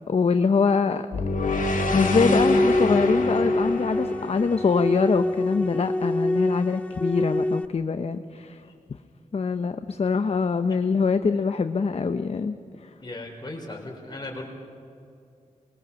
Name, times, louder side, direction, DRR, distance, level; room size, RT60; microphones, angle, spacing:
voice 1, 0.1-1.0 1.7-8.6 9.3-12.6 12.8-12.9, left 5 dB, 50° left, 9 dB, 0.7 m, -24 dB
sound 1, 1.1-5.4, left 2 dB, 75° left, 2.4 m, -27 dB
sound 2, 1.9-7.7, left 1 dB, 10° left, 0.6 m, -25 dB
voice 2, 13.0-14.5, left 2 dB, 30° left, 1 dB, 4.5 m, -37 dB
24.0 x 21.0 x 6.9 m, 2.4 s
wide cardioid pair, 125°, 14 cm